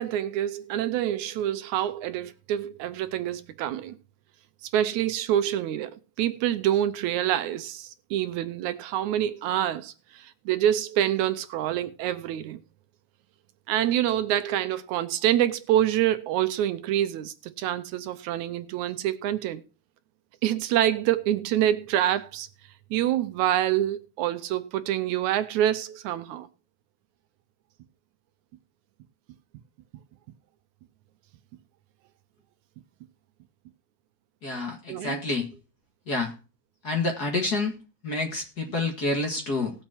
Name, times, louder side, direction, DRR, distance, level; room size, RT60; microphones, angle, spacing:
voice 1, 0.0-4.0 4.6-12.6 13.7-19.6 20.4-22.5 22.9-26.5 34.9-35.2, right 11 dB, 80° right, 2.1 m, -26 dB
voice 2, 34.4-35.5 36.1-36.3 36.8-37.7 38.0-39.7, left 2 dB, 35° left, 1.9 m, -28 dB
19.0 x 7.3 x 2.8 m
omnidirectional pair, 3.5 m